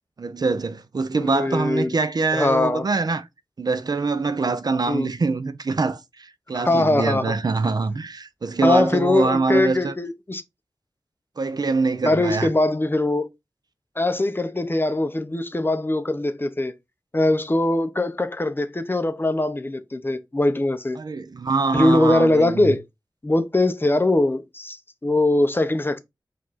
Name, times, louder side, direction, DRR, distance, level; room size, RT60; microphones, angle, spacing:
voice 1, 0.2-3.3 3.6-9.9 11.4-12.5 21.0-22.7, right 4 dB, 55° right, 0.4 m, -24 dB
voice 2, 1.3-2.0 2.3-2.8 4.9-5.1 6.5-7.3 8.6-10.4 12.0-13.3 14.0-16.7 17.1-21.0 21.7-22.8 23.2-24.8 25.0-26.0, left 2 dB, 25° left, 0.6 m, -21 dB
4.7 x 2.5 x 4.0 m
wide cardioid pair, 80°, 8 cm